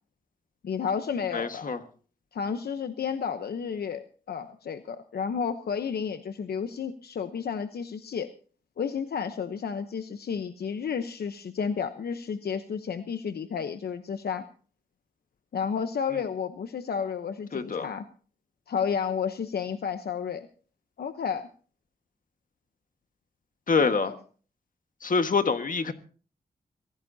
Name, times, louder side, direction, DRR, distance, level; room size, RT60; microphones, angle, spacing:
voice 1, 0.6-1.7 2.3-4.0 4.3-8.3 8.8-14.4 15.5-18.0 18.7-20.5 21.0-21.5 23.8-24.1, left 6 dB, 80° left, 9 dB, 0.9 m, -31 dB
voice 2, 1.3-1.8 17.5-17.9 23.7-24.1 25.0-25.9, left 4 dB, 60° left, 8 dB, 1.6 m, -25 dB
23.5 x 16.0 x 2.8 m, 0.41 s
wide cardioid pair, 90°, 16 cm